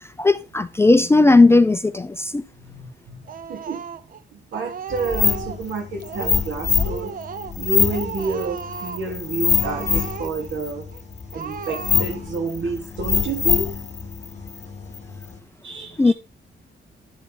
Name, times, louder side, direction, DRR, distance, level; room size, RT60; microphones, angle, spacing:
voice 1, 0.2-2.4 16.0-16.1, left 3 dB, 15° left, 0.4 m, -16 dB
voice 2, 2.6-3.8 4.3-7.1 7.6-10.8 11.3-13.7 15.6-16.1, right 3 dB, 75° right, 3.1 m, -29 dB
Speech, 3.3-4.2 4.5-5.7 6.0-6.5 6.8-7.6 7.9-9.1 9.5-10.6 10.9-11.0 11.3-12.3, right 7 dB, 45° right, 0.6 m, -35 dB
sound 1, 4.9-15.4, left 7 dB, 35° left, 1.4 m, -25 dB
11.0 x 4.4 x 5.4 m
wide cardioid pair, 145°, 20 cm